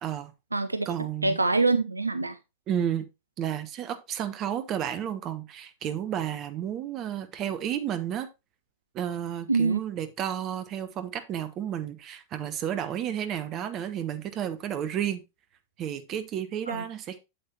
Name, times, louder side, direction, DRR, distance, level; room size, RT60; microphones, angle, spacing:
voice 1, 0.0-0.3 0.8-1.4 2.7-3.1 3.4-8.3 8.9-15.2 15.8-17.2, right 10 dB, 35° right, 1.2 m, -32 dB
voice 2, 0.5-0.9 1.2-2.4 9.5-9.8 16.7-16.8, right 3 dB, 80° right, 0.5 m, -24 dB
7.9 x 7.8 x 2.9 m
figure-of-eight pair, 90°, 0 cm